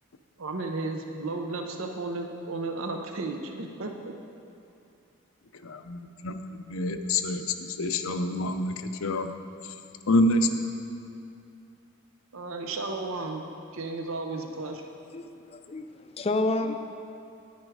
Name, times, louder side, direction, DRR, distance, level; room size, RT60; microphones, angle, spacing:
voice 1, 0.4-4.2 12.3-13.4 13.7-14.8, right 3 dB, 70° right, 4 dB, 0.7 m, -34 dB
voice 2, 5.6-9.3 10.1-10.6, left 1 dB, 70° left, 7 dB, 0.6 m, -27 dB
voice 3, 15.1-15.9 16.2-16.7, left 2 dB, 30° left, 7 dB, 0.4 m, -29 dB
10.5 x 9.3 x 4.7 m, 2.6 s
head